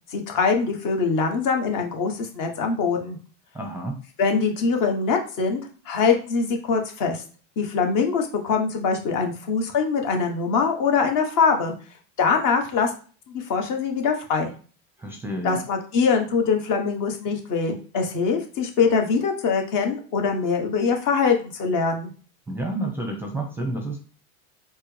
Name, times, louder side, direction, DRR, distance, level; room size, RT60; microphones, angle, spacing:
voice 1, 0.1-3.2 4.2-5.6 5.8-7.2 7.6-11.7 12.2-12.9 13.3-14.5 15.4-22.1, left 5 dB, 50° left, 3 dB, 1.2 m, -23 dB
voice 2, 3.5-4.0 15.0-15.6 22.5-24.0, right 1 dB, 5° right, 2 dB, 0.6 m, -30 dB
4.4 x 2.0 x 3.2 m, 0.38 s
hypercardioid pair, 95°, 43 cm